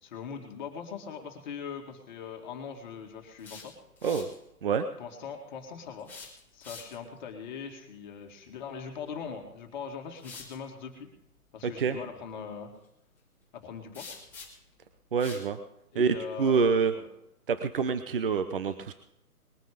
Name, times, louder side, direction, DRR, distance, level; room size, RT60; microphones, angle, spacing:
voice 1, 0.0-3.7 5.0-6.1 6.5-11.1 11.5-12.7 13.5-14.1 15.9-17.1, left 6 dB, 30° left, 3 dB, 2.2 m, -41 dB
sound 1, 3.4-4.4 6.0-7.2 9.2-9.4 10.2-10.6 13.9-14.7 15.2-15.5, left 4 dB, 5° left, 1.8 m, -46 dB
voice 2, 11.6-12.0 15.1-15.6 15.9-16.9 17.5-18.9, right 5 dB, 35° right, 10 dB, 0.8 m, -26 dB
21.0 x 9.2 x 5.1 m, 0.82 s
figure-of-eight pair, 150°, 46 cm